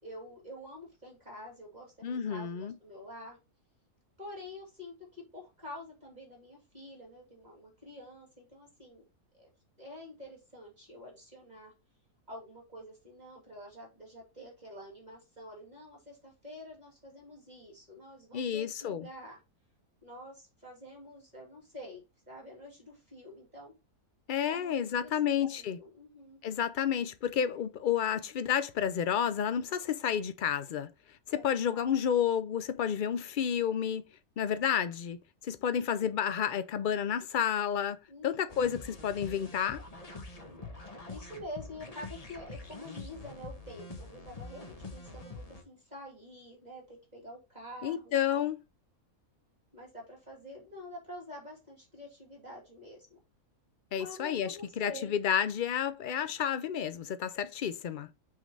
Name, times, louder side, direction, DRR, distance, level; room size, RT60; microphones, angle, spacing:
voice 1, 0.0-3.4 4.2-9.0 9.3-9.5 9.8-11.7 12.3-19.4 20.0-23.7 24.5-25.1 25.4-26.4 31.3-32.0 38.1-38.4 39.2-39.4 41.1-48.5 49.7-53.2 54.0-55.1, left 1 dB, 30° right, 2.7 m, -48 dB
voice 2, 2.0-2.7 18.3-19.1 24.3-25.8 26.4-30.9 31.3-34.0 34.4-35.2 35.5-38.0 38.2-39.8 47.8-48.6 53.9-58.1, left 8 dB, 65° left, 0.4 m, -30 dB
sound 1, 38.5-45.6, left 3 dB, 30° left, 1.1 m, -45 dB
6.0 x 3.9 x 5.4 m
omnidirectional pair, 1.5 m